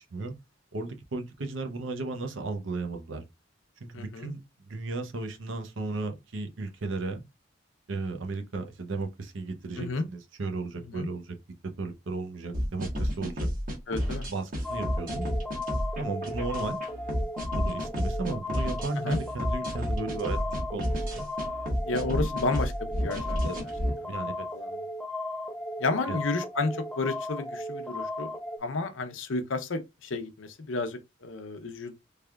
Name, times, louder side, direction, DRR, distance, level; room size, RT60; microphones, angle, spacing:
voice 1, 0.7-3.2 3.8-7.2 7.9-11.4 11.8-13.5 14.3-15.3 16.0-16.8 17.5-21.3 23.4-23.6 24.0-24.5 26.1-26.2, right 3 dB, 80° right, 0.7 m, -35 dB
voice 2, 3.9-4.3 9.8-10.0 10.8-11.1 13.9-14.3 19.0-19.2 21.8-23.4 24.5-24.8 25.8-28.3 28.6-31.9, left 3 dB, 75° left, 0.6 m, -31 dB
sound 1, 12.5-23.9, equal, 45° right, 1.2 m, -31 dB
sound 2, 14.6-28.6, left 1 dB, 5° left, 0.3 m, -36 dB
3.5 x 3.3 x 2.3 m
head